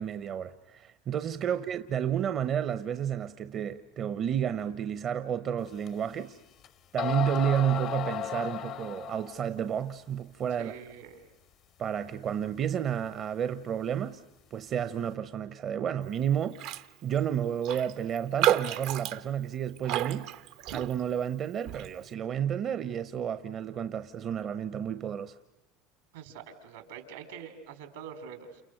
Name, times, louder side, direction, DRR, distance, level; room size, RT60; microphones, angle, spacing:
voice 1, 0.0-6.4 6.9-10.7 11.8-14.2 14.5-16.6 17.0-20.3 20.7-25.3, right 9 dB, 45° right, 0.9 m, -31 dB
sound 1, 5.9-6.0 6.6-6.7 7.0-9.4, left 10 dB, 50° left, 0.9 m, -34 dB
voice 2, 10.6-11.3 26.1-28.6, right 7 dB, 85° right, 3.8 m, -45 dB
Raindrop, 16.5-16.9 17.2-17.3 17.6-21.2 21.7-21.9, right 12 dB, 65° right, 0.9 m, -31 dB
29.5 x 28.5 x 6.5 m
hypercardioid pair, 95°, 0 cm